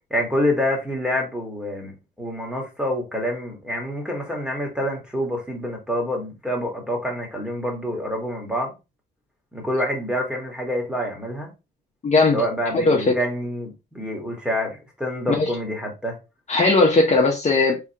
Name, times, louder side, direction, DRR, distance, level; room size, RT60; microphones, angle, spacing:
voice 1, 0.1-8.7 9.5-11.5 12.3-16.2, equal, 5° right, 1.6 m, -27 dB
voice 2, 12.0-12.4 12.7-13.2 15.3-15.5 16.5-17.8, left 3 dB, 35° left, 0.9 m, -18 dB
3.4 x 3.3 x 2.9 m
cardioid pair, 90°, 20 cm